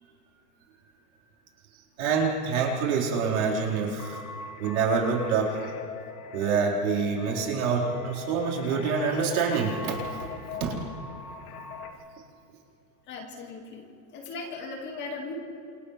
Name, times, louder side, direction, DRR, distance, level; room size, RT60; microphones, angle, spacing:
voice 1, 2.0-4.2 4.6-5.6 6.3-10.3 10.6-10.7, right 5 dB, 65° right, -3 dB, 4.9 m, -26 dB
sound 1, 4.0-11.9, left 6 dB, 70° left, 2.8 m, -40 dB
voice 2, 13.1-15.3, left 3 dB, 25° left, 1 dB, 2.2 m, -38 dB
28.0 x 28.0 x 3.4 m, 2.6 s
supercardioid pair, 165°, 46 cm